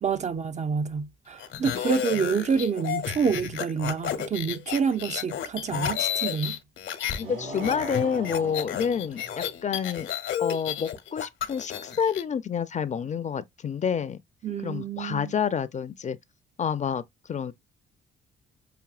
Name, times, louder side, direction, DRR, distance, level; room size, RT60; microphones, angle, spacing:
voice 1, 0.0-6.6 14.4-15.3, right 6 dB, 35° right, 0.5 m, -28 dB
sound 1, 1.4-7.2 7.5-12.2, left 10 dB, 75° left, 0.9 m, -32 dB
sound 2, 7.1-9.5, right 2 dB, 80° right, 2.0 m, -39 dB
voice 2, 7.2-10.1 10.4-14.2 14.6-16.2 16.6-17.0 17.3-17.5, left 7 dB, 35° left, 0.5 m, -28 dB
5.9 x 2.6 x 2.4 m
cardioid pair, 90°, 20 cm